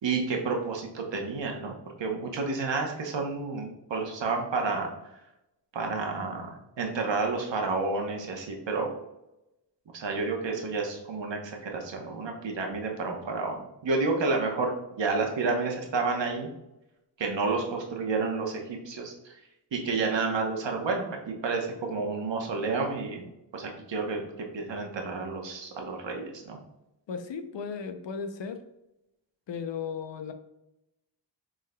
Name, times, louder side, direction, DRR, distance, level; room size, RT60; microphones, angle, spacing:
voice 1, 0.0-4.9 5.7-8.9 9.9-16.5 17.2-19.3 19.7-23.2 23.5-26.6, right 4 dB, 80° right, 2 dB, 1.0 m, -30 dB
voice 2, 27.1-28.6 29.5-30.3, left 6 dB, 80° left, 7 dB, 0.6 m, -35 dB
6.4 x 3.7 x 2.2 m, 0.90 s
wide cardioid pair, 115°, 43 cm